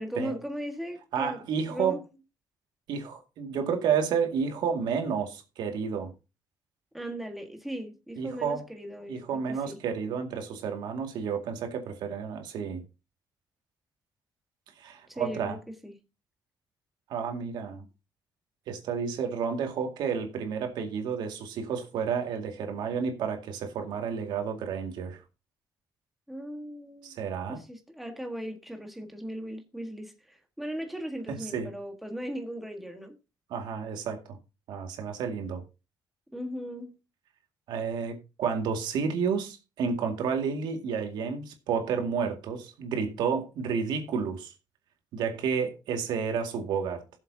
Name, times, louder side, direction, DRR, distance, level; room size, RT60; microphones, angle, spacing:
voice 1, 0.0-1.4 1.7-2.0 6.9-9.8 15.1-15.6 15.8-16.0 26.3-27.2 27.5-33.2 36.3-36.9, equal, ahead, 1.5 m, -38 dB
voice 2, 1.1-2.0 2.9-6.1 8.2-8.6 9.1-12.8 14.8-15.6 17.1-17.9 18.7-25.2 27.0-27.6 31.3-31.7 33.5-34.4 34.7-35.6 37.7-44.5 45.1-47.0, right 6 dB, 85° right, 2.1 m, -31 dB
17.5 x 7.3 x 2.8 m
cardioid pair, 165°, 7 cm